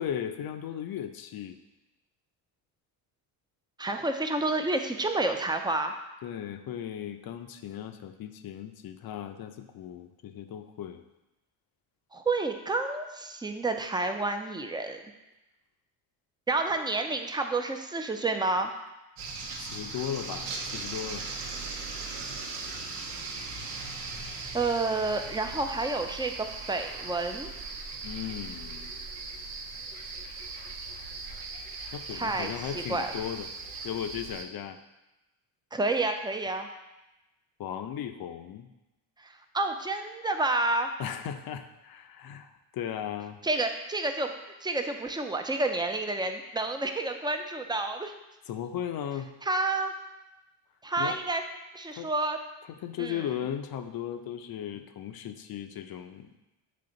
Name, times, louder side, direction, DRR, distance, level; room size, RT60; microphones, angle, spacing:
voice 1, 0.0-1.6 6.2-11.0 19.6-21.3 28.0-28.9 31.9-33.5 33.8-34.8 37.6-38.7 41.0-43.4 48.5-49.3 51.0-51.2 51.9-52.1 52.6-56.4, left 9 dB, 50° left, 8 dB, 0.6 m, -36 dB
voice 2, 3.8-5.9 12.1-15.0 16.5-18.7 24.5-27.5 32.1-33.1 35.7-36.7 39.2-40.9 43.4-44.3 44.6-48.1 49.4-49.9 50.8-51.4 51.7-52.4 53.0-53.2, right 2 dB, 10° right, 5 dB, 0.5 m, -29 dB
sound 1, 19.2-34.4, right 4 dB, 80° right, 1.0 m, -39 dB
7.7 x 3.3 x 3.8 m, 0.98 s
supercardioid pair, 80°, 49 cm